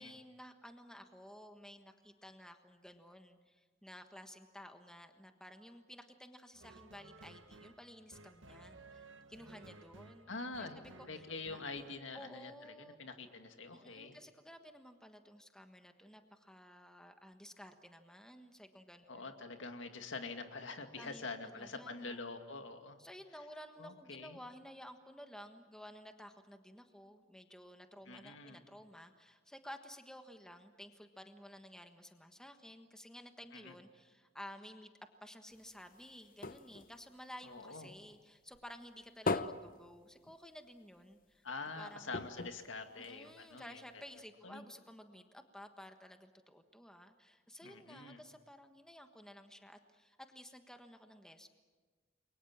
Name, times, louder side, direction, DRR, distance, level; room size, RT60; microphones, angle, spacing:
voice 1, 0.0-11.6 12.1-13.0 13.7-19.2 21.0-22.2 23.0-34.9 35.2-41.4 41.7-42.2 43.0-51.5, equal, 5° left, 6 dB, 1.4 m, -54 dB
sound 1, 6.5-12.0, right 2 dB, 70° right, 1.6 m, -57 dB
voice 2, 10.3-14.2 19.1-23.0 23.8-24.4 28.1-28.6 33.5-33.7 37.4-37.9 41.4-43.8 44.4-44.7 47.6-48.2, left 3 dB, 70° left, 6 dB, 2.3 m, -45 dB
sound 2, 35.5-38.2 38.5-40.8 41.1-41.2 41.5-41.6 42.1-43.6 44.2-44.3, left 3 dB, 45° left, 0.8 m, -41 dB
29.5 x 23.0 x 7.4 m, 1.4 s
head